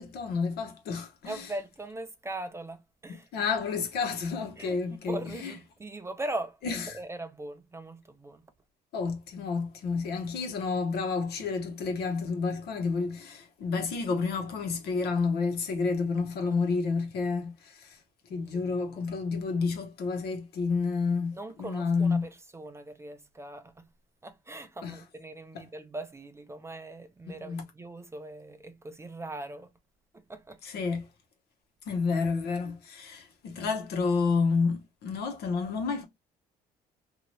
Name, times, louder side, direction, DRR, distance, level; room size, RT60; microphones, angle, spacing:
voice 1, 0.0-1.4 3.1-5.5 6.6-6.8 8.9-18.0 18.3-22.3 24.8-25.0 27.3-27.6 30.6-31.1 31.8-36.0, left 4 dB, 70° left, 1.1 m, -30 dB
voice 2, 1.3-3.3 4.6-8.5 16.3-16.5 18.3-19.0 21.3-23.9 24.2-29.7 30.1-30.6, right 2 dB, 15° right, 0.5 m, -40 dB
2.8 x 2.6 x 3.0 m
cardioid pair, 110°, 17 cm